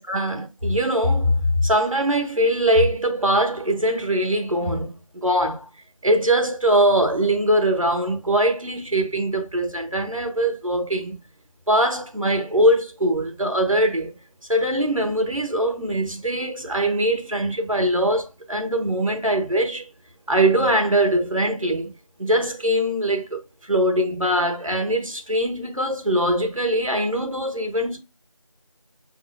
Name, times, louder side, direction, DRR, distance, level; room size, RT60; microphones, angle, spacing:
voice 1, 0.0-5.7 6.0-11.2 11.7-14.1 14.5-19.9 20.3-21.9 22.2-28.0, right 1 dB, 80° right, 1.4 m, -22 dB
6.0 x 3.6 x 2.3 m
figure-of-eight pair, 180°, 17 cm